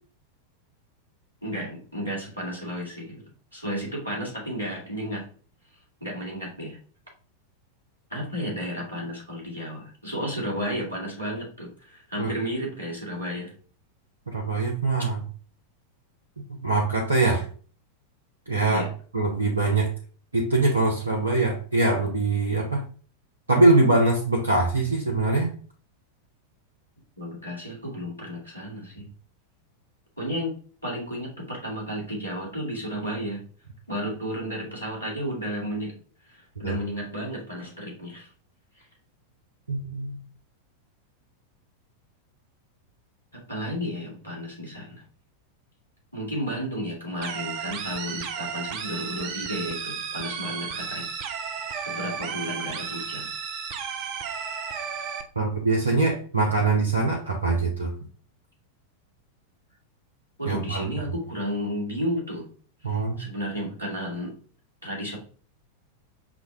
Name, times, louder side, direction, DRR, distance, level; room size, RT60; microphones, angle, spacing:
voice 1, 1.4-3.2 3.5-5.3 6.0-6.8 8.1-13.5 18.7-18.9 27.2-29.1 30.2-30.5 30.8-33.4 33.9-35.9 36.3-38.3 38.8-38.9 43.3-45.0 46.1-51.1 51.9-53.3 60.4-62.5 62.8-64.3 64.8-65.2, equal, 90° left, -5 dB, 1.9 m, -32 dB
voice 2, 14.3-15.2 16.6-17.5 18.5-18.9 19.1-19.9 20.3-22.8 23.5-25.5 36.6-36.8 39.7-40.2 55.4-57.9 60.5-60.9 62.8-63.2, right 3 dB, 80° right, -1 dB, 0.7 m, -23 dB
sound 1, 47.2-55.2, right 7 dB, 45° right, 0.5 m, -33 dB
6.0 x 2.2 x 3.5 m, 0.42 s
figure-of-eight pair, 90°, 0 cm